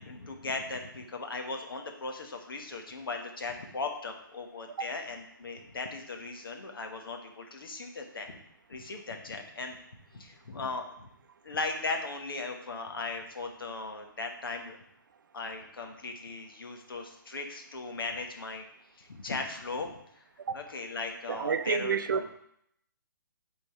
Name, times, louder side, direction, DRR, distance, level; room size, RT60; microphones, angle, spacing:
voice 1, 0.0-8.4 8.7-9.8 10.1-11.1 11.4-14.8 15.3-18.6 19.0-20.0 20.5-22.2, left 3 dB, 85° left, 4 dB, 1.2 m, -38 dB
voice 2, 21.3-22.3, right 6 dB, 65° right, 11 dB, 0.5 m, -30 dB
7.6 x 3.8 x 3.6 m, 0.73 s
hypercardioid pair, 165°, 12 cm